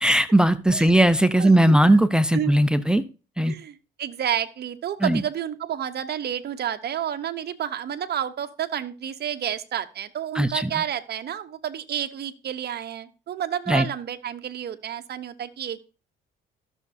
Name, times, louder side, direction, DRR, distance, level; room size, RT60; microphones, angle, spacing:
voice 1, 0.0-3.0 3.4-3.5 5.0-5.2 10.3-10.7 13.7-13.8, right 1 dB, 5° right, 12 dB, 0.6 m, -18 dB
voice 2, 1.4-2.0 2.3-2.5 3.5-15.8, right 9 dB, 55° right, 9 dB, 0.8 m, -30 dB
13.5 x 6.5 x 2.6 m, 0.34 s
cardioid pair, 90°, 20 cm